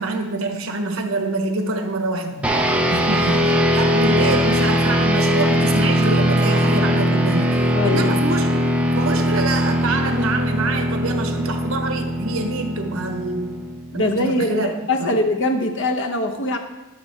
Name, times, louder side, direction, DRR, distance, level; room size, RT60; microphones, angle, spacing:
voice 1, 0.0-2.5 2.9-8.5 8.9-13.6 13.9-15.1, right 2 dB, 80° right, 4 dB, 1.2 m, -26 dB
sound 1, 2.4-14.1, equal, 5° right, 0.7 m, -20 dB
voice 2, 13.9-16.6, left 1 dB, 60° left, 4 dB, 0.9 m, -22 dB
12.5 x 6.5 x 3.5 m, 1.0 s
head